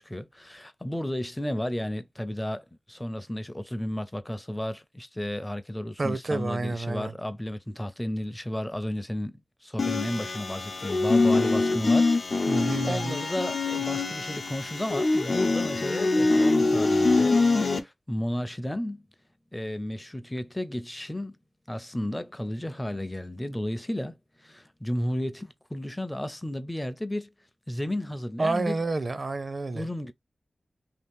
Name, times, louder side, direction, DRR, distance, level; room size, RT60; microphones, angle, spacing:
voice 1, 0.0-19.0 19.5-21.3 21.7-24.1 24.4-27.3 27.7-28.8 29.7-30.1, left 1 dB, 15° left, 0.6 m, -33 dB
voice 2, 6.0-7.1 12.5-13.2 28.4-29.9, right 3 dB, 55° right, 0.5 m, -29 dB
sound 1, 9.8-17.8, left 3 dB, 60° left, 0.7 m, -24 dB
2.9 x 2.4 x 3.5 m
cardioid pair, 50°, 0 cm